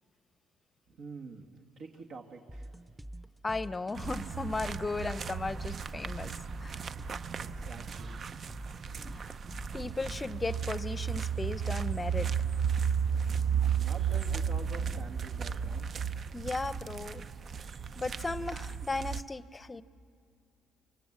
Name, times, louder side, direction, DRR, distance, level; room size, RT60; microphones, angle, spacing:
voice 1, 0.9-2.8 6.8-8.7 9.0-9.3 13.7-15.9, right 4 dB, 65° right, 0 dB, 2.0 m, -48 dB
sound 1, 2.5-10.5, right 1 dB, 10° right, 0.9 m, -46 dB
voice 2, 3.4-6.3 6.6-6.8 9.1-9.3 9.7-12.3 16.3-17.2 18.0-19.8, left 3 dB, 20° left, 15 dB, 0.7 m, -36 dB
sound 2, 3.9-19.2, right 7 dB, 45° right, 0.6 m, -34 dB
24.5 x 23.5 x 7.4 m, 2.3 s
cardioid pair, 90°, 0 cm